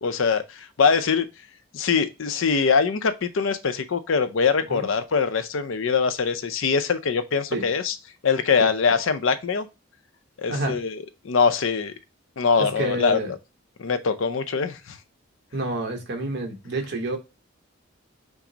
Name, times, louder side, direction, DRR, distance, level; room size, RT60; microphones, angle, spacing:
voice 1, 0.0-1.3 1.7-7.9 8.2-9.7 10.4-11.0 11.2-11.9 12.4-13.4 13.8-15.0, left 5 dB, 70° left, 0.5 m, -23 dB
voice 2, 10.5-10.8 12.6-13.3 15.5-17.2, right 2 dB, 50° right, 1.0 m, -29 dB
5.8 x 2.0 x 3.8 m
head